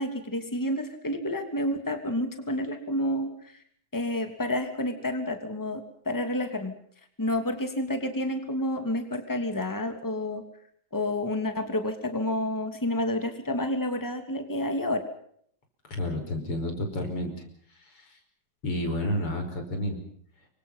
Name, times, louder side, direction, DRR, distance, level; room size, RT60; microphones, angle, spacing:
voice 1, 0.0-3.6 3.9-6.7 7.2-10.4 10.9-15.0, left 1 dB, 10° left, 6 dB, 2.8 m, -29 dB
voice 2, 15.9-17.3 17.7-18.2 18.6-20.0, left 1 dB, 90° left, 5 dB, 6.3 m, -30 dB
29.0 x 24.0 x 5.7 m, 0.65 s
omnidirectional pair, 2.4 m